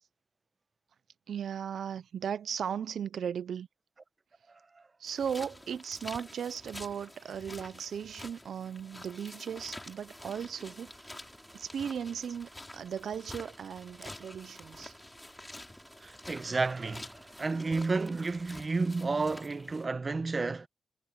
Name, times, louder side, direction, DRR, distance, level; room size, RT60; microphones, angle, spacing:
voice 1, 1.3-3.7 5.0-10.9 11.5-14.9, right 8 dB, 70° right, 0.7 m, -37 dB
sound 1, 5.0-19.9, left 1 dB, 15° left, 4.4 m, -49 dB
sound 2, 9.5-19.1, right 1 dB, 10° right, 6.6 m, -57 dB
voice 2, 16.0-20.7, right 3 dB, 35° right, 1.1 m, -31 dB
cardioid pair, 75°, 0 cm